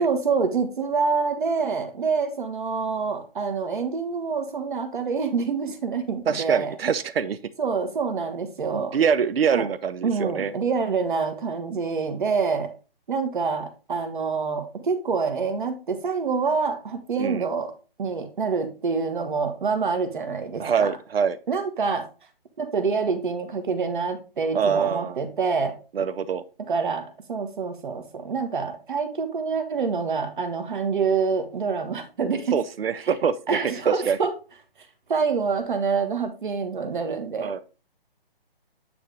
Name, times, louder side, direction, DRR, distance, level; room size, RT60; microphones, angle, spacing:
voice 1, 0.0-6.7 7.6-9.0 9.5-9.7 10.0-12.7 13.1-17.7 18.0-21.0 21.5-22.1 22.6-25.8 26.6-32.6 33.0-33.1 33.5-34.3 35.1-37.5, right 5 dB, 55° right, 7 dB, 1.5 m, -26 dB
voice 2, 6.3-7.4 8.7-10.5 17.2-17.5 20.6-21.4 24.5-25.2 25.9-26.4 32.5-33.6 34.1-34.2 37.4-37.6, right 7 dB, 80° right, 14 dB, 0.6 m, -24 dB
9.3 x 3.4 x 3.9 m, 0.33 s
hypercardioid pair, 155°, 30 cm